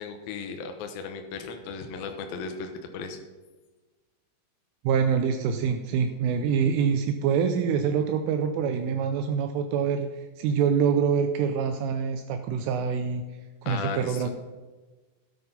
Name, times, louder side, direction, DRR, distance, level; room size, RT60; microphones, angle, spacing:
voice 1, 0.0-3.2 13.7-14.3, left 5 dB, 85° left, 5 dB, 2.0 m, -36 dB
voice 2, 4.8-13.2 13.6-14.3, right 7 dB, 80° right, 6 dB, 3.1 m, -25 dB
13.0 x 9.4 x 5.4 m, 1.3 s
omnidirectional pair, 5.8 m